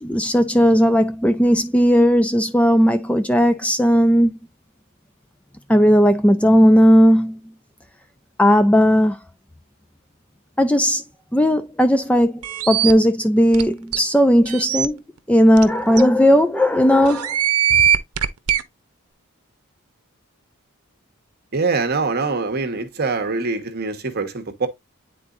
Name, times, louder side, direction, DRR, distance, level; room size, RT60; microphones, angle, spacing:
voice 1, 0.0-4.4 5.7-7.4 8.4-9.2 10.6-11.0 11.3-15.0 15.3-17.4, equal, 5° left, 0.4 m, -16 dB
sound 1, 12.4-12.9 13.5-13.6 13.9-14.0 14.5-14.9 15.6-15.7 16.0-16.1 17.1-18.6, right 9 dB, 85° right, 0.8 m, -20 dB
voice 2, 21.5-24.7, right 4 dB, 45° right, 1.2 m, -23 dB
9.8 x 3.9 x 2.4 m
head